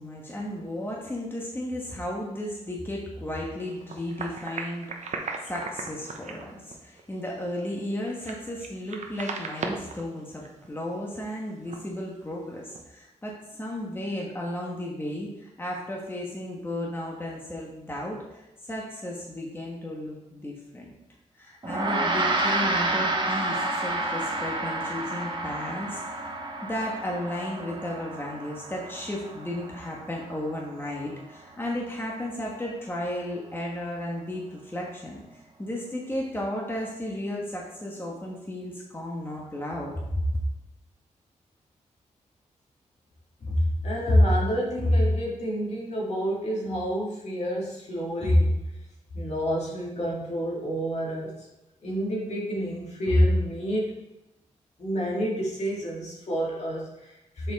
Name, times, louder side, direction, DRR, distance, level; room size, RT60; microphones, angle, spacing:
voice 1, 0.0-4.9 5.4-20.9 21.3-26.0 26.6-35.2 35.6-40.2, left 1 dB, 15° left, -3 dB, 1.4 m, -34 dB
sound 1, 3.7-10.1 10.4-10.7 11.0-11.1 11.4-11.5 11.6-12.0 12.6-12.8, right 4 dB, 65° right, 0.9 m, -37 dB
Gong, 21.6-31.3, right 2 dB, 35° right, 1.2 m, -30 dB
voice 2, 43.4-48.6 49.1-51.3 51.8-53.9 54.8-57.5, equal, 60° left, -4 dB, 2.3 m, -26 dB
6.4 x 4.7 x 4.1 m, 0.94 s
cardioid pair, 80°, 13 cm